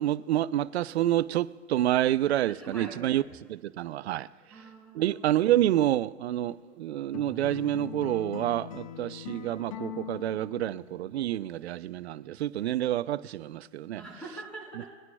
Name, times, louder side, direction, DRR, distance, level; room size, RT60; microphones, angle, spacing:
voice 1, 0.0-3.2 3.5-4.3 4.9-14.0, right 13 dB, 55° right, 0.5 m, -28 dB
voice 2, 2.6-3.2 4.5-5.5 14.0-14.9, right 3 dB, 5° left, 4.0 m, -43 dB
sound 1, 7.1-11.3, left 9 dB, 25° left, 0.4 m, -42 dB
22.0 x 9.4 x 2.3 m
hypercardioid pair, 125°, 39 cm